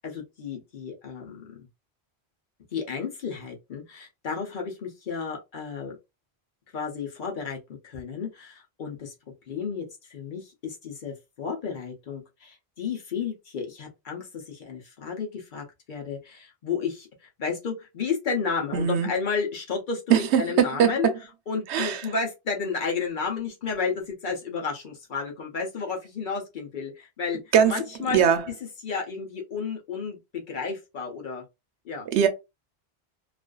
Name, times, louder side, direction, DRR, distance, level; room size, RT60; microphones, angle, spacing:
voice 1, 0.0-1.7 2.7-6.0 6.7-7.6 7.8-9.1 9.5-21.1 21.5-28.3 28.8-31.4 31.8-32.1, left 5 dB, 55° left, 0.7 m, -32 dB
voice 2, 18.7-19.1 20.1-21.1 21.7-22.1 27.5-27.8 28.1-28.4 32.1-32.3, right 8 dB, 90° right, 0.9 m, -21 dB
2.4 x 2.4 x 2.2 m
omnidirectional pair, 1.1 m